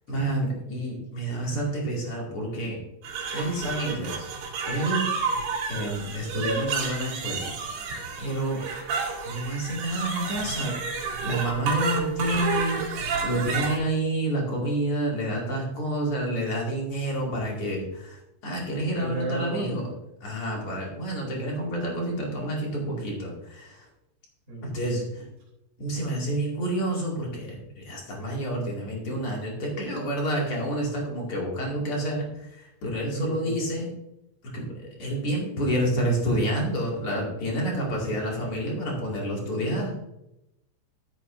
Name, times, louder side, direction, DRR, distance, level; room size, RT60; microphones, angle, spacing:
voice 1, 0.1-2.8 3.3-4.3 4.6-5.0 5.7-7.5 8.2-8.6 9.2-10.9 11.2-19.9 20.2-23.9 24.6-25.3 25.8-33.9 34.4-39.9, right 1 dB, 40° left, -3 dB, 2.2 m, -29 dB
sound 1, 3.0-13.8, right 5 dB, 60° right, 3.6 m, -30 dB
voice 2, 18.9-19.7 24.5-24.8 33.1-33.6 37.8-38.1 39.3-39.9, right 1 dB, 20° right, -5 dB, 2.8 m, -35 dB
13.0 x 9.0 x 2.7 m, 0.86 s
omnidirectional pair, 5.9 m